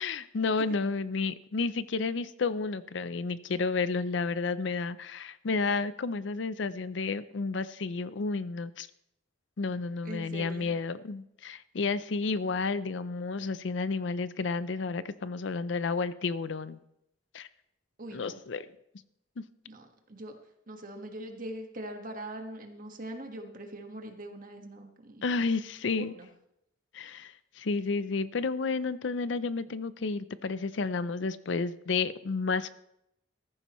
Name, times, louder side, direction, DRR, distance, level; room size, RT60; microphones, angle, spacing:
voice 1, 0.0-8.9 9.6-16.8 17.3-17.5 18.1-18.7 19.4-19.5 25.2-26.1 26.9-32.7, left 4 dB, 65° left, 15 dB, 0.5 m, -31 dB
voice 2, 10.0-10.7 18.0-18.4 19.6-20.3 20.7-25.4 26.1-26.3, right 1 dB, 45° right, 4 dB, 1.6 m, -42 dB
14.5 x 14.5 x 3.1 m, 0.81 s
head